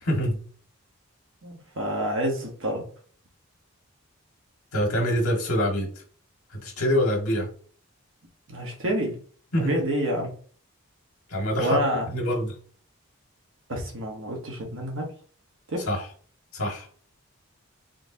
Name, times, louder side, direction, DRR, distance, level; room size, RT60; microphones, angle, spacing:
voice 1, 0.0-0.4 4.7-5.9 6.5-7.5 9.5-9.8 11.3-11.8 12.1-12.6 15.8-16.1 16.5-16.9, equal, 80° left, 0 dB, 1.6 m, -25 dB
voice 2, 1.4-2.9 8.5-9.2 9.6-10.3 11.6-12.0 13.7-15.1 15.7-15.9, equal, 60° right, 0 dB, 1.0 m, -28 dB
3.9 x 3.5 x 2.7 m, 0.43 s
head